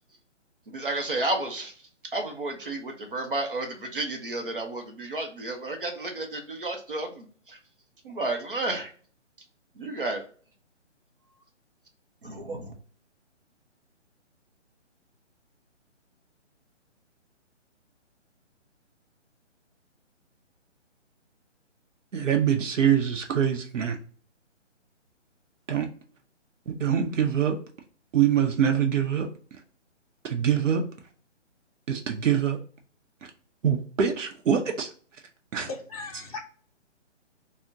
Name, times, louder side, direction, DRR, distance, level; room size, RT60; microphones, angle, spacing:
voice 1, 0.7-1.7 2.1-7.6 8.0-8.9 9.8-10.2 12.2-12.7, right 2 dB, 45° right, 4 dB, 0.6 m, -32 dB
voice 2, 22.1-24.0 25.7-25.9 26.7-27.6 28.1-29.3 30.2-30.8 31.9-32.6 33.6-34.9 35.5-35.7, right 8 dB, 90° right, 3 dB, 0.7 m, -24 dB
voice 3, 35.6-36.4, left 3 dB, 30° left, -2 dB, 0.6 m, -37 dB
3.5 x 2.1 x 2.6 m, 0.43 s
hypercardioid pair, 175°, 37 cm